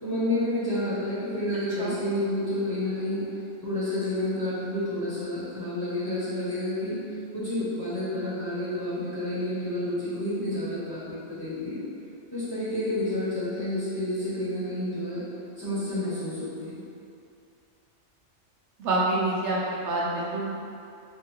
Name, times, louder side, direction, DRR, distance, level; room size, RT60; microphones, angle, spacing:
voice 1, 0.0-3.2 3.6-7.0 7.3-11.8 12.3-15.2 15.6-16.8, left 1 dB, 20° left, -11 dB, 1.0 m, -29 dB
voice 2, 18.8-20.4, right 2 dB, 75° right, -5 dB, 0.9 m, -27 dB
3.7 x 2.3 x 4.4 m, 2.6 s
omnidirectional pair, 1.2 m